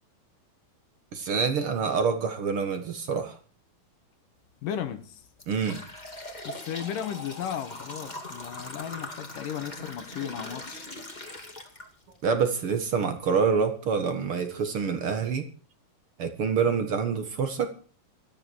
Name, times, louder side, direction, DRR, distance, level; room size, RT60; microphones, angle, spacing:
voice 1, 1.1-3.4 5.5-5.8 12.2-15.5 16.2-17.7, right 5 dB, 55° right, 1.6 m, -26 dB
sound 1, 4.4-4.6 5.1-12.3 12.7-12.8 13.7-13.8 14.3-14.4 14.8-15.0, left 2 dB, 15° left, 1.8 m, -41 dB
voice 2, 4.6-5.3 6.4-10.8, left 9 dB, 65° left, 2.6 m, -35 dB
18.5 x 13.5 x 4.7 m
omnidirectional pair, 4.6 m